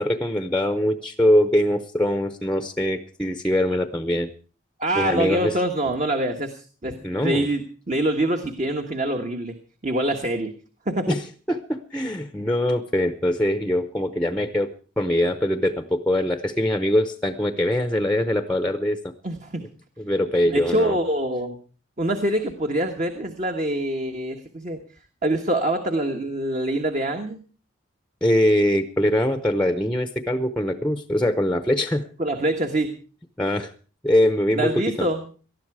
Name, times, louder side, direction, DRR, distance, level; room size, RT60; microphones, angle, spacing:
voice 1, 0.0-4.3 5.0-5.5 7.0-7.5 11.1-11.2 11.5-14.7 15.0-19.1 20.0-21.0 28.2-32.0 33.4-33.7 34.0-34.7 35.0-35.1, left 1 dB, 5° left, 9 dB, 0.8 m, -22 dB
voice 2, 4.8-9.6 9.8-10.5 10.8-11.1 19.2-19.6 20.5-21.6 22.0-24.8 25.2-27.4 32.2-32.9 34.5-35.2, right 1 dB, 35° right, 5 dB, 1.3 m, -25 dB
19.0 x 13.0 x 4.8 m, 0.39 s
head